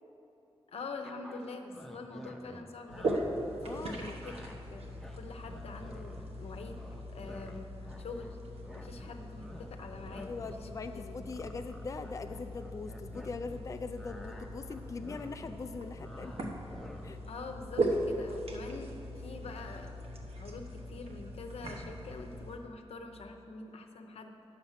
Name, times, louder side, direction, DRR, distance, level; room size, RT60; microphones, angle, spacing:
voice 1, 0.7-4.3 4.7-7.7 8.0-8.4 8.7-11.2 17.3-20.0 20.4-24.3, left 3 dB, 85° left, 5 dB, 0.7 m, -45 dB
sound 1, 1.0-3.2 3.7-3.9 4.2-4.6 4.9-6.4 6.7-8.4 8.6-13.6 13.9-17.3, equal, 5° left, 0.7 m, -50 dB
sound 2, 2.9-22.6, right 1 dB, 75° right, 1.0 m, -39 dB
voice 2, 3.6-4.2 10.3-16.5 17.0-17.2, left 4 dB, 30° left, 7 dB, 0.3 m, -41 dB
9.9 x 6.6 x 5.7 m, 3.0 s
wide cardioid pair, 115°, 10 cm